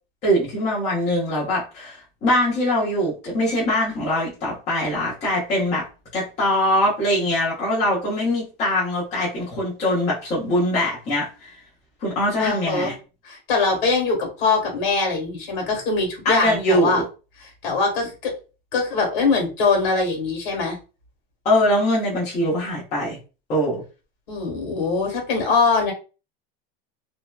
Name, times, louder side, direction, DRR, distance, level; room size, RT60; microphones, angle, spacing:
voice 1, 0.2-5.9 6.1-11.6 12.0-12.9 16.2-17.0 21.4-23.2 23.5-23.8, left 1 dB, 20° left, -7 dB, 0.8 m, -22 dB
voice 2, 12.4-12.9 13.2-17.0 17.6-18.3 18.7-20.8 24.3-25.9, left 4 dB, 55° left, 1 dB, 1.4 m, -22 dB
2.8 x 2.1 x 2.2 m, 0.32 s
supercardioid pair, 170°, 29 cm